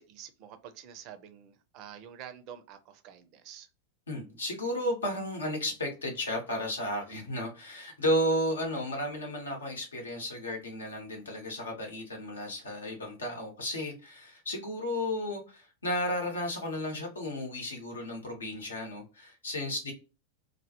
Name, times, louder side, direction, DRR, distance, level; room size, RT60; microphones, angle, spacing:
voice 1, 0.0-3.7, right 9 dB, 40° right, 0.4 m, -48 dB
voice 2, 4.1-19.9, left 1 dB, 75° left, 0.9 m, -33 dB
2.2 x 2.0 x 2.8 m
figure-of-eight pair, 90°, 0 cm